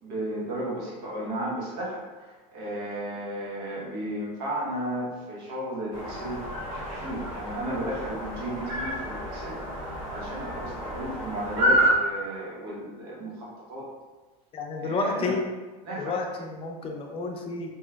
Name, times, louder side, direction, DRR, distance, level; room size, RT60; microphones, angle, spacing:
voice 1, 0.0-6.4 7.0-9.6 10.1-13.9 14.8-15.3 15.8-16.1, right 1 dB, 75° right, -4 dB, 1.1 m, -34 dB
sound 1, 5.9-11.9, equal, 40° right, 1.1 m, -29 dB
voice 2, 14.5-15.4 16.0-17.7, left 3 dB, 30° left, 2 dB, 0.5 m, -30 dB
3.0 x 3.0 x 2.3 m, 1.3 s
supercardioid pair, 110°, 20 cm